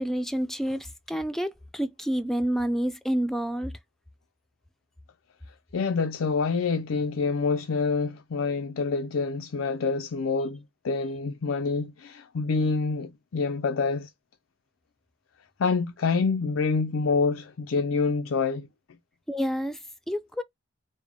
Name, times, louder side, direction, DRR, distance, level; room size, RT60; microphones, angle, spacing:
voice 1, 0.0-3.7 19.3-19.8 20.1-20.4, equal, ahead, 0.4 m, -28 dB
voice 2, 5.7-14.1 15.6-18.7, left 4 dB, 85° left, 0.5 m, -27 dB
5.1 x 2.1 x 3.5 m
head